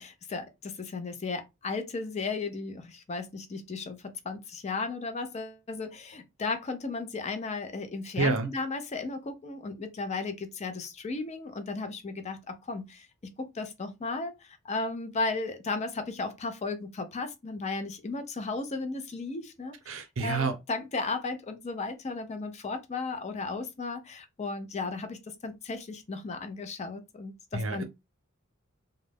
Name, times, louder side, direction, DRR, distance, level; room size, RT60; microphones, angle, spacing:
voice 1, 0.0-4.0 4.2-27.8, left 3 dB, 35° left, 0.4 m, -35 dB
voice 2, 8.2-8.5 19.9-20.6 27.5-27.8, right 3 dB, 70° right, 0.6 m, -28 dB
2.3 x 2.0 x 3.3 m
head